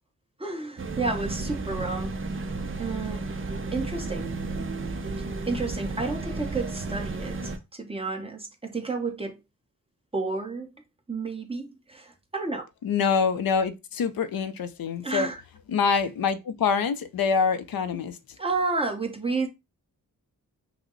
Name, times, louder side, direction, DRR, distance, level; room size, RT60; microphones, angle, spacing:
voice 1, 0.4-2.2 2.8-3.4 3.7-4.3 5.5-9.4 10.1-10.7 11.1-12.6 15.0-15.4 18.4-19.5, right 3 dB, 15° right, 0.9 m, -31 dB
sound 1, 0.8-7.6, right 3 dB, 35° right, 0.6 m, -33 dB
voice 2, 12.8-15.3 15.7-18.2, left 6 dB, 85° left, 0.6 m, -25 dB
5.8 x 2.1 x 3.8 m
wide cardioid pair, 130°, 34 cm